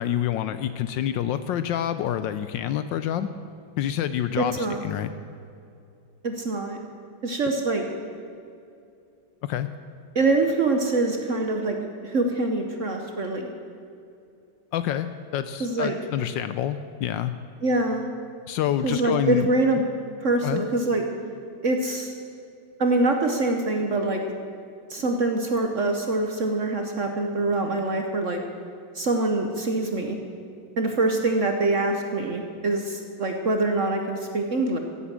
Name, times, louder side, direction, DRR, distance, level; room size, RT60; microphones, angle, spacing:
voice 1, 0.0-3.3 3.8-5.1 9.4-9.7 14.7-17.3 18.5-19.5 20.4-20.6, left 10 dB, 75° left, 11 dB, 1.1 m, -27 dB
voice 2, 4.4-4.8 6.2-6.8 7.2-7.8 10.1-11.8 12.0-13.5 15.6-15.9 17.6-18.1 18.8-19.8 20.2-21.0 21.6-22.1 22.8-24.2 24.9-28.4 28.9-30.2 30.8-34.8, right 2 dB, 50° right, 3 dB, 1.0 m, -24 dB
16.0 x 8.3 x 7.4 m, 2.5 s
omnidirectional pair, 2.3 m